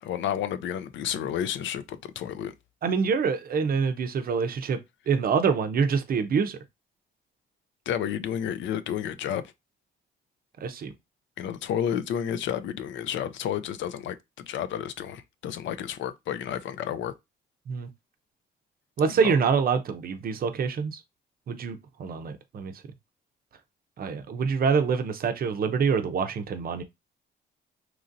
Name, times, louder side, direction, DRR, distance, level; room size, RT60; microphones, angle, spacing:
voice 1, 0.0-2.5 7.9-9.5 11.4-17.1 19.2-19.4, left 9 dB, 70° left, 0.4 m, -31 dB
voice 2, 2.8-4.8 5.1-6.6 10.6-10.9 17.7-17.9 19.0-21.0 21.5-22.7 24.0-26.8, right 5 dB, 50° right, 0.5 m, -26 dB
3.0 x 2.6 x 2.5 m
cardioid pair, 90°, 20 cm